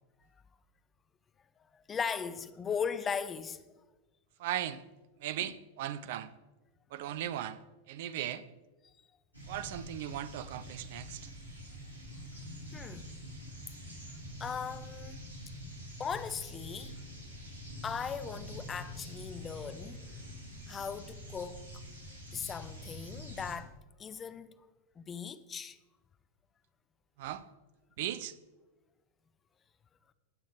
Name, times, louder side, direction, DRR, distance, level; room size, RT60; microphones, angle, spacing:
voice 1, 1.7-3.6 5.4-5.5 10.8-10.9 12.7-13.1 14.4-15.2 16.0-17.0 17.8-20.0 20.7-21.7 22.3-23.7 24.0-24.6 25.0-25.8, left 6 dB, 20° left, 0.7 m, -38 dB
voice 2, 4.4-4.8 5.2-6.3 6.9-7.6 7.9-8.4 9.5-11.3 27.2-27.4 28.0-28.3, right 11 dB, 50° right, 0.6 m, -37 dB
sound 1, 9.3-23.5, equal, 85° left, 3.3 m, -46 dB
19.0 x 6.4 x 4.8 m
figure-of-eight pair, 90°, 0 cm